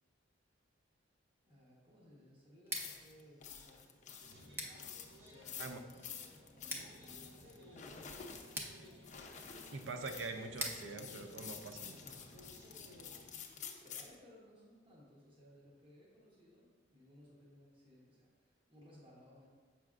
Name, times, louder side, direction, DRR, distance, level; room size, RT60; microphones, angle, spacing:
voice 1, 1.4-4.2 4.5-4.7 5.1-6.1 6.6-8.5 8.8-8.9 13.2-19.5, equal, 30° right, -5 dB, 1.0 m, -62 dB
Scissors, 2.6-12.4, equal, 10° right, 0.6 m, -49 dB
sound 1, 2.7-14.2, left 7 dB, 40° left, 0.6 m, -50 dB
sound 2, 4.2-13.2, equal, 65° right, 1.1 m, -58 dB
voice 2, 9.7-12.2, right 3 dB, 80° right, 6 dB, 0.5 m, -44 dB
7.6 x 5.7 x 2.4 m, 1.5 s
head